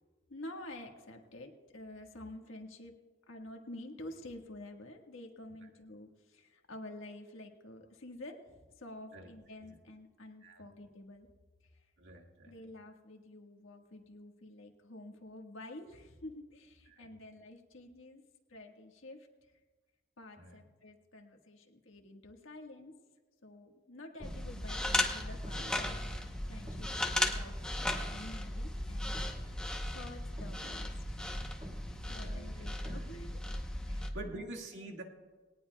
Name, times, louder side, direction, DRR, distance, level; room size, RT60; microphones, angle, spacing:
voice 1, 0.3-2.9 3.3-11.3 11.7-11.8 12.4-18.2 18.5-19.3 20.2-22.9 23.4-26.1 26.5-27.6 28.1-31.3 31.8-33.4 33.9-34.6, left 1 dB, 75° left, 2 dB, 1.6 m, -49 dB
voice 2, 12.0-12.6 16.9-17.2 20.4-20.6 25.6-26.0 32.0-33.1 33.9-35.0, right 1 dB, 65° right, 1 dB, 1.8 m, -48 dB
sound 1, 24.2-34.1, left 2 dB, 5° left, 0.8 m, -38 dB
sound 2, 24.2-34.1, equal, 25° right, 1.7 m, -40 dB
20.5 x 18.5 x 2.3 m, 1.3 s
head